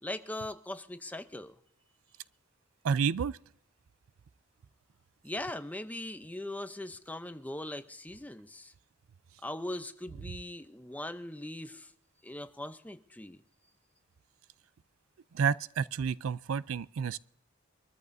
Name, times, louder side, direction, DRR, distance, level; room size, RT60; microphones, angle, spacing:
voice 1, 0.0-1.5 5.2-8.7 9.4-11.9 12.2-13.4, left 1 dB, 10° left, 0.6 m, -40 dB
voice 2, 2.8-3.4 15.3-17.2, right 6 dB, 90° right, 0.4 m, -30 dB
23.5 x 13.5 x 2.7 m
head